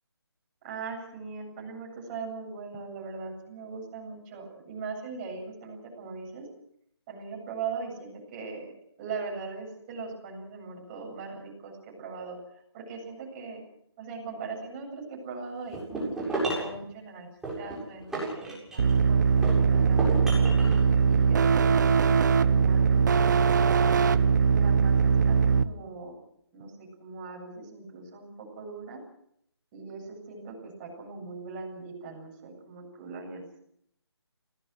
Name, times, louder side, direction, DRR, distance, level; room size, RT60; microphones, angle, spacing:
voice 1, 0.6-6.5 7.1-8.7 9.0-13.6 14.0-17.3 17.6-20.0 20.6-24.0 24.5-26.1 26.5-29.0 29.7-33.4, right 4 dB, 20° right, 0 dB, 8.0 m, -40 dB
sound 1, 15.7-16.8 17.4-19.0 19.4-20.8, right 2 dB, 5° right, 7.5 m, -32 dB
sound 2, 18.8-25.6, right 5 dB, 45° right, 1.2 m, -21 dB
27.5 x 18.5 x 6.3 m, 0.70 s
figure-of-eight pair, 155°, 14 cm